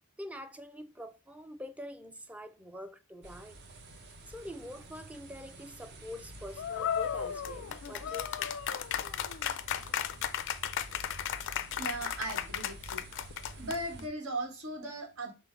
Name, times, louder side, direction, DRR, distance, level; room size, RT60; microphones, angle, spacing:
voice 1, 0.2-3.6 4.3-8.6, left 1 dB, 5° right, 0.4 m, -45 dB
sound 1, 3.2-14.1, right 1 dB, 50° right, 0.7 m, -49 dB
sound 2, 6.6-14.0, left 9 dB, 60° left, 0.4 m, -35 dB
voice 2, 11.8-13.0 13.6-15.3, right 1 dB, 80° right, 1.3 m, -37 dB
5.4 x 2.1 x 4.4 m
head